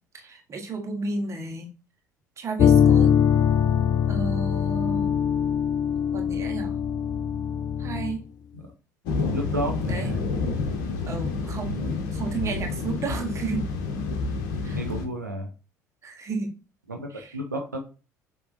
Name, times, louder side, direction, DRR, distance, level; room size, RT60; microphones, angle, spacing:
voice 1, 0.1-1.7 2.4-3.1 4.1-5.1 6.1-6.8 7.8-8.2 9.9-10.1 11.1-11.8 12.1-13.7 14.6-14.8 16.0-16.5 17.1-17.4, right 3 dB, 30° right, 3 dB, 1.4 m, -32 dB
sound 1, 2.6-8.2, left 8 dB, 45° left, 0.4 m, -22 dB
sound 2, 9.1-15.1, left 4 dB, 60° left, 1.0 m, -29 dB
voice 2, 9.3-10.3 11.7-12.0 14.7-15.5 16.9-17.8, right 1 dB, 85° right, 2 dB, 0.8 m, -32 dB
6.9 x 3.0 x 2.6 m, 0.32 s
figure-of-eight pair, 60°, 9 cm